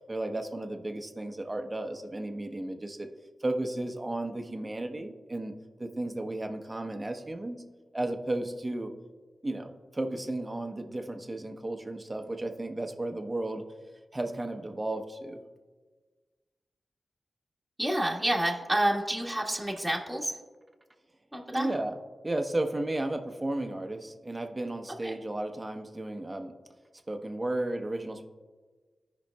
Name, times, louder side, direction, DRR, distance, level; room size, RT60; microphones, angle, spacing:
voice 1, 0.1-3.1 3.4-5.5 5.8-7.6 7.9-8.9 9.4-13.7 14.1-15.4 21.5-21.9 22.2-26.5 27.1-28.3, right 1 dB, 30° right, 5 dB, 1.0 m, -34 dB
voice 2, 17.8-20.4 21.3-21.7 25.0-25.2, right 1 dB, 10° right, -2 dB, 1.5 m, -29 dB
14.5 x 5.2 x 2.3 m, 1.4 s
cardioid pair, 45°, 0 cm